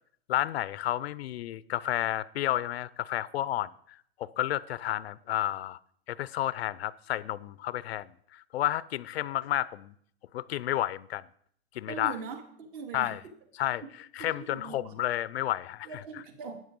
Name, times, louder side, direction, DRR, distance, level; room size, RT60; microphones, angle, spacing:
voice 1, 0.3-3.7 4.2-5.8 6.1-9.9 10.3-11.2 11.7-12.2 12.9-13.2 13.5-13.8 14.1-15.9, left 13 dB, 65° left, 0.5 m, -31 dB
voice 2, 11.9-13.1 13.8-13.9 14.2-14.9 15.8-16.6, right 5 dB, 45° right, 2.3 m, -41 dB
12.5 x 9.4 x 5.3 m
supercardioid pair, 165°, 34 cm